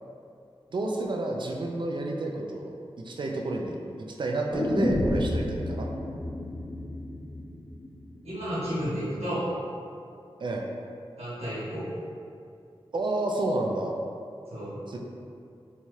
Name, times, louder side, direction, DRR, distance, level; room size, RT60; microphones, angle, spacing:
voice 1, 0.7-2.7 3.0-5.9 10.4-10.7 12.9-13.9 14.9-15.0, right 2 dB, 50° right, 1 dB, 0.4 m, -30 dB
sound 1, 4.5-8.6 8.9-9.0, left 1 dB, 35° left, 0.4 m, -30 dB
voice 2, 8.2-9.5 11.2-11.9 14.5-14.8, equal, 85° right, -11 dB, 1.0 m, -32 dB
2.7 x 2.3 x 3.1 m, 2.4 s
cardioid pair, 40°, 10 cm